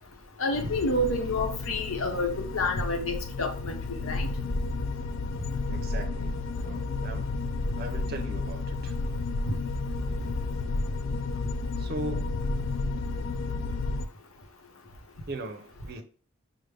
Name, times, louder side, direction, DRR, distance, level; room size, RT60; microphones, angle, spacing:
voice 1, 0.4-3.7 4.0-4.3 9.5-9.6, left 2 dB, 80° left, 3 dB, 0.9 m, -28 dB
sound 1, 0.5-14.1, left 3 dB, 60° left, 0.3 m, -32 dB
voice 2, 5.7-7.3 7.8-9.0 11.8-12.4 15.3-16.0, right 2 dB, 45° right, 5 dB, 0.6 m, -39 dB
sound 2, 9.4-10.5, right 1 dB, 5° left, 1.2 m, -43 dB
4.9 x 2.1 x 3.3 m, 0.40 s
head